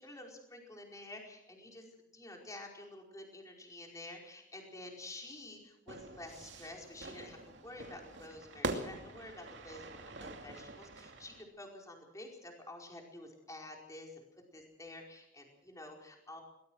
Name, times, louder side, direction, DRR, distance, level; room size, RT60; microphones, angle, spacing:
voice 1, 0.0-1.8 2.1-14.2 14.5-16.4, left 2 dB, 20° left, 1 dB, 4.8 m, -50 dB
Fire / Fireworks, 5.9-11.4, right 2 dB, 80° right, 2.6 m, -44 dB
22.0 x 19.5 x 6.4 m, 0.79 s
head